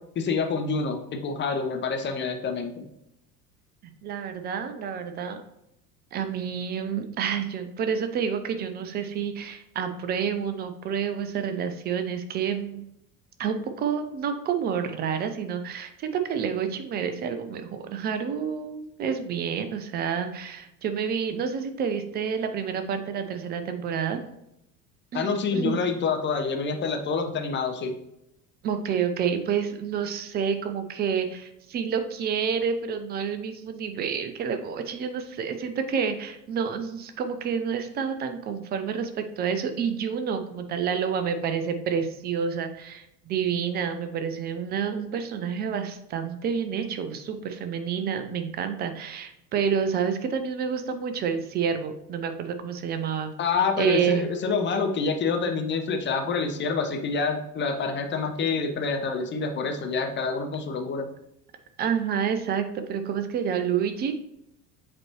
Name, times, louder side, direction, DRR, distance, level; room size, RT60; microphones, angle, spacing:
voice 1, 0.2-2.9 25.1-27.9 53.4-61.1, left 4 dB, 25° left, 5 dB, 0.7 m, -27 dB
voice 2, 4.0-5.4 6.1-12.8 13.4-24.2 25.1-25.3 25.5-25.8 28.6-53.3 53.8-54.2 61.8-64.1, right 7 dB, 20° right, 8 dB, 0.4 m, -29 dB
7.7 x 4.2 x 2.9 m, 0.81 s
figure-of-eight pair, 70°, 49 cm